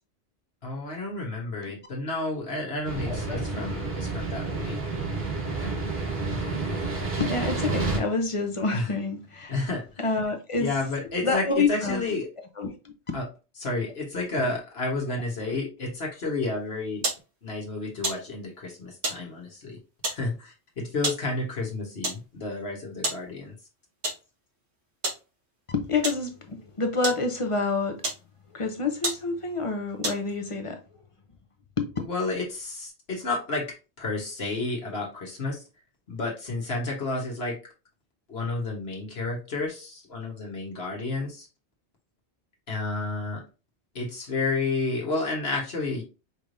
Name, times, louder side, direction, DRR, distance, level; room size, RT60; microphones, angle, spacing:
voice 1, 0.6-4.8 8.7-8.9 9.5-10.0 10.6-12.3 13.1-13.3 13.6-17.0 17.4-19.8 20.1-23.5 32.0-35.6 36.1-37.6 38.3-41.5 42.7-43.4 43.9-46.0, left 3 dB, 70° left, 1.5 m, -31 dB
sound 1, 2.8-8.0, right 3 dB, 65° right, 1.6 m, -29 dB
voice 2, 3.1-3.6 7.2-9.5 10.0-10.7 11.2-12.0 12.6-12.9 14.4-14.5 25.7-28.0 28.5-30.8 31.8-31.9, left 3 dB, 35° left, 0.7 m, -28 dB
sound 2, 17.0-17.2 18.0-18.2 19.0-19.2 20.0-20.2 21.0-21.2 22.0-22.2 23.0-23.2 24.0-24.2 25.0-25.2 26.0-26.2 27.0-27.2 28.0-28.2 28.7-28.8 29.0-29.2 30.0-30.4, right 2 dB, 85° right, 1.5 m, -29 dB
5.3 x 3.3 x 2.6 m
omnidirectional pair, 1.1 m